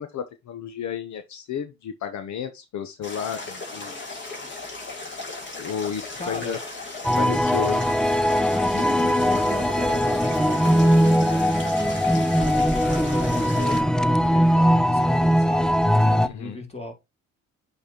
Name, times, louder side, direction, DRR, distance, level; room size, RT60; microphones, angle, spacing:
voice 1, 0.0-4.0 5.6-6.6 7.1-7.9 16.2-16.6, left 8 dB, 70° left, 0.9 m, -32 dB
sound 1, 3.0-13.8, left 3 dB, 40° left, 3.6 m, -36 dB
voice 2, 6.2-6.6 8.7-16.9, left 2 dB, 20° left, 3.0 m, -37 dB
sound 2, 7.0-16.3, equal, ahead, 0.3 m, -20 dB
8.5 x 4.2 x 2.9 m
cardioid pair, 90°, 30 cm